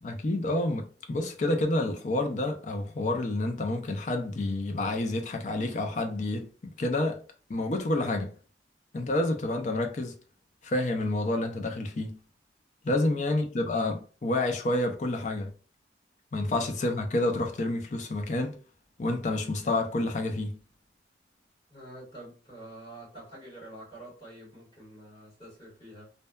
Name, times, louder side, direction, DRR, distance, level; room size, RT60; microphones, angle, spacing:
voice 1, 0.0-7.2 7.5-8.4 8.9-10.1 10.6-12.2 12.8-15.5 16.3-18.6 19.0-20.6, left 2 dB, 40° left, 0.4 m, -29 dB
voice 2, 12.9-13.2 16.4-16.5 21.7-26.1, right 1 dB, 25° left, 1.5 m, -47 dB
2.6 x 2.2 x 2.2 m
head